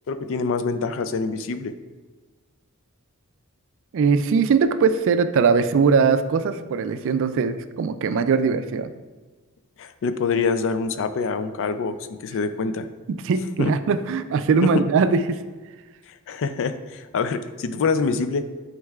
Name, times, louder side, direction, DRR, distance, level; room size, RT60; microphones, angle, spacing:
voice 1, 0.1-1.7 9.8-12.9 13.6-13.7 16.1-18.4, left 4 dB, 60° left, 11 dB, 0.4 m, -25 dB
voice 2, 3.9-8.9 13.1-15.4, right 5 dB, 60° right, 11 dB, 0.4 m, -21 dB
9.4 x 4.5 x 2.4 m, 1.3 s
head